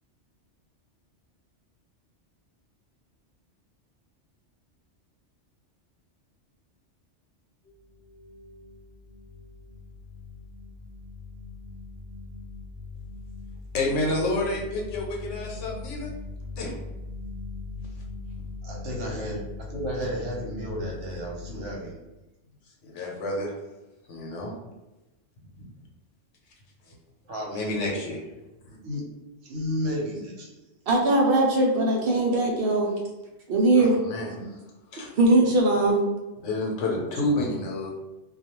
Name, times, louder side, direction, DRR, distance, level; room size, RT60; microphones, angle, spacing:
sound 1, 7.6-21.8, left 3 dB, 55° left, 0.8 m, -40 dB
voice 1, 13.7-16.1 16.6-16.7 22.8-23.5 24.1-24.5 25.6-25.7 27.5-28.2 33.8-34.6 34.9-35.1 36.4-37.9, left 2 dB, 85° left, -1 dB, 1.0 m, -29 dB
voice 2, 18.6-22.0 26.8-26.9 27.3-27.9 28.8-29.0 29.4-30.6 37.2-37.5, equal, 80° right, -2 dB, 1.1 m, -33 dB
voice 3, 30.9-32.9 33.5-34.0 35.2-36.0, right 2 dB, 60° right, 0 dB, 0.6 m, -20 dB
2.3 x 2.3 x 2.9 m, 1.0 s
omnidirectional pair, 1.2 m